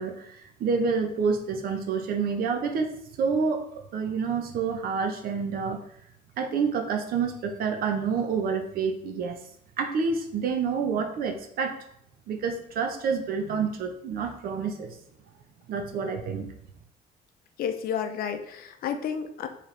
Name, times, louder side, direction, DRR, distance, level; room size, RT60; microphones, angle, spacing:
voice 1, 0.0-5.8 6.4-9.4 9.8-11.8 12.3-15.0 15.7-16.5, right 5 dB, 60° right, 6 dB, 0.7 m, -28 dB
voice 2, 17.6-19.5, left 7 dB, 60° left, 8 dB, 0.6 m, -31 dB
4.7 x 3.3 x 3.2 m, 0.70 s
cardioid pair, 110°, 17 cm